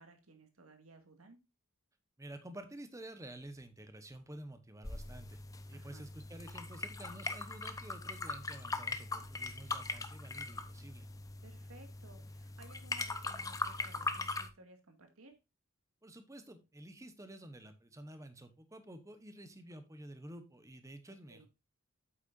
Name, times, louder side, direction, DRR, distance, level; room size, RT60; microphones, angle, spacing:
voice 1, 0.0-1.4 5.7-6.1 11.4-15.4 21.1-21.5, right 2 dB, 90° right, 5 dB, 2.0 m, -59 dB
voice 2, 2.2-5.4 5.7-11.1 16.0-21.5, right 1 dB, 15° right, 9 dB, 1.0 m, -50 dB
sound 1, 4.8-14.5, left 3 dB, 15° left, 0.6 m, -41 dB
8.4 x 8.1 x 2.5 m, 0.26 s
head